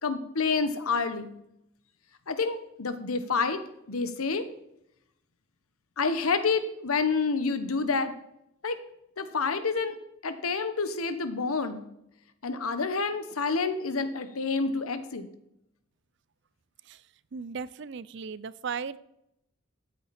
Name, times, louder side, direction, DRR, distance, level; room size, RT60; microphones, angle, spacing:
voice 1, 0.0-1.3 2.3-3.6 3.9-4.4 6.0-8.1 8.6-8.8 9.2-9.9 10.2-11.8 12.4-15.3, left 4 dB, 90° left, 10 dB, 1.1 m, -28 dB
voice 2, 17.3-19.0, right 6 dB, 55° right, 17 dB, 0.4 m, -36 dB
13.0 x 8.5 x 4.2 m, 0.81 s
head